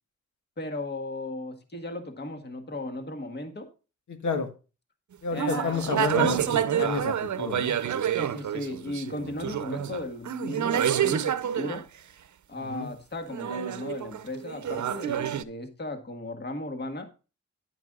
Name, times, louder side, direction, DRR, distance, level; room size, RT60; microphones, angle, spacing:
voice 1, 0.6-3.7 5.3-5.9 8.1-11.9 12.5-17.1, left 2 dB, 35° left, 5 dB, 1.8 m, -36 dB
voice 2, 4.1-4.5 5.2-7.8 12.7-12.9, left 4 dB, 75° left, 5 dB, 1.6 m, -30 dB
sound 1, 5.3-11.8 13.3-15.4, right 9 dB, 75° right, 0.8 m, -28 dB
10.5 x 10.5 x 2.4 m, 0.32 s
wide cardioid pair, 115°, 30 cm